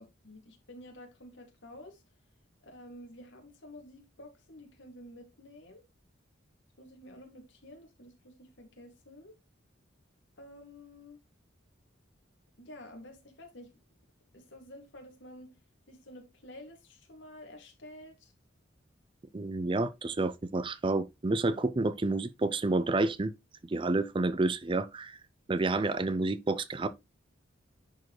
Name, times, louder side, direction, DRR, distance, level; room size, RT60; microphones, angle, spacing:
voice 1, 0.0-2.0 2.6-5.8 6.8-9.3 10.4-11.2 12.6-13.7 14.3-15.5 15.9-18.3, left 1 dB, 70° left, 2.3 m, -50 dB
voice 2, 19.3-23.3 23.6-25.2 25.5-26.9, right 2 dB, 25° right, 0.5 m, -29 dB
10.5 x 4.6 x 3.2 m
head